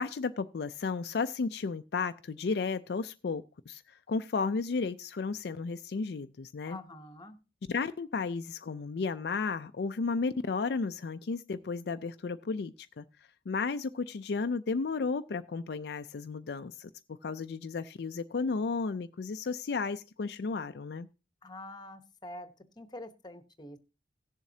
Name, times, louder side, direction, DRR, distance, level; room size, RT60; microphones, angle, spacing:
voice 1, 0.0-6.8 7.7-13.0 13.5-16.9 17.2-21.1, left 4 dB, 60° left, 9 dB, 0.4 m, -33 dB
voice 2, 6.6-7.4 21.4-22.5 22.8-23.8, left 1 dB, 25° left, 10 dB, 0.9 m, -45 dB
17.5 x 7.2 x 2.7 m, 0.30 s
head